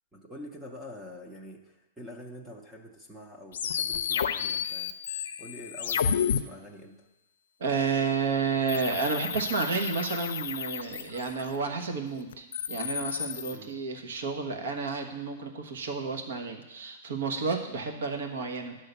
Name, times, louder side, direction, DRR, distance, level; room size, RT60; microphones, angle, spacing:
voice 1, 0.1-5.0 5.4-7.1 13.5-13.7, left 1 dB, 5° right, 1 dB, 0.6 m, -46 dB
sound 1, 3.5-6.4 8.7-11.5 12.3-13.6, left 8 dB, 90° left, 0.4 m, -31 dB
voice 2, 7.6-18.9, right 5 dB, 80° right, 4 dB, 1.3 m, -31 dB
10.0 x 3.8 x 6.7 m, 0.99 s
supercardioid pair, 175°, 0 cm